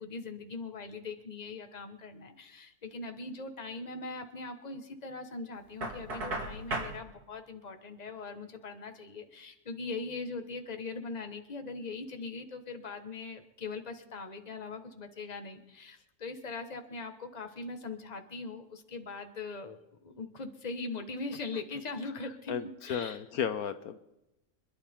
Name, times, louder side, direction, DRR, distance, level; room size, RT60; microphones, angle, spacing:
voice 1, 0.0-23.2, left 3 dB, 30° left, 6 dB, 1.4 m, -41 dB
Knock, 5.8-7.0, right 2 dB, 80° right, 3.2 m, -35 dB
voice 2, 22.5-24.0, left 8 dB, 70° left, 10 dB, 1.3 m, -34 dB
26.0 x 11.5 x 3.7 m, 0.93 s
omnidirectional pair, 1.6 m